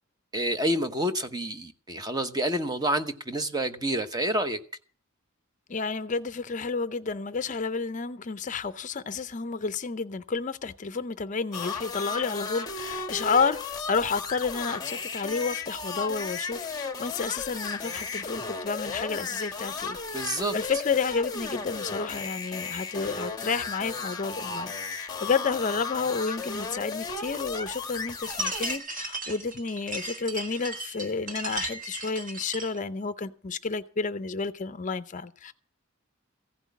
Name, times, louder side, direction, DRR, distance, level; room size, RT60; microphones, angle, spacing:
voice 1, 0.3-4.6 20.1-20.5, right 1 dB, 20° right, 0.8 m, -28 dB
voice 2, 5.7-35.5, left 5 dB, 35° left, 0.5 m, -31 dB
sound 1, 11.5-28.8, left 4 dB, 20° left, 1.1 m, -35 dB
sound 2, 28.2-32.8, right 2 dB, 40° right, 2.0 m, -36 dB
15.5 x 6.1 x 9.4 m
head